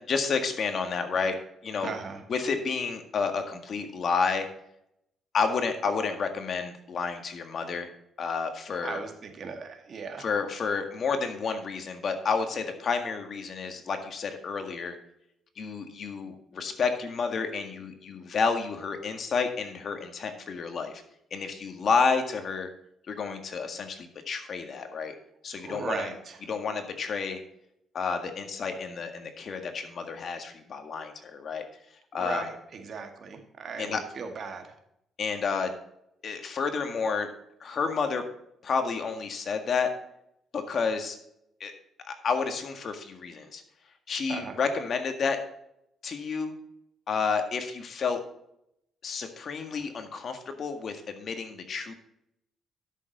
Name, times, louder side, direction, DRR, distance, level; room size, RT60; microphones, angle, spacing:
voice 1, 0.0-1.4 1.6-1.9 2.3-4.5 5.3-7.9 8.2-9.0 10.2-14.9 15.6-21.0 21.3-22.7 23.1-25.1 25.4-26.1 26.5-27.4 27.9-31.6 32.1-32.5 33.8-34.0 35.2-35.8 36.2-37.3 37.6-38.2 38.6-39.9 40.5-41.2 41.6-41.7 42.0-43.6 44.1-45.4 46.0-46.5 47.1-48.2 49.0-51.9, left 5 dB, 55° left, 6 dB, 1.8 m, -30 dB
voice 2, 1.8-2.2 8.8-10.3 25.6-26.4 32.1-34.7 44.3-44.6, right 5 dB, 55° right, 5 dB, 1.9 m, -37 dB
12.0 x 6.9 x 4.1 m, 0.77 s
cardioid pair, 90°, 0 cm